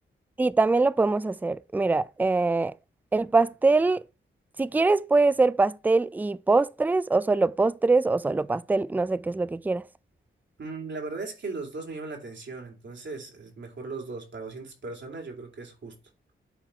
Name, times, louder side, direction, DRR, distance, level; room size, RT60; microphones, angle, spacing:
voice 1, 0.4-2.7 3.1-4.0 4.6-9.8, right 3 dB, 10° right, 0.4 m, -23 dB
voice 2, 10.6-16.0, right 3 dB, 60° right, 2.7 m, -38 dB
9.1 x 3.9 x 4.3 m
cardioid pair, 65°, 21 cm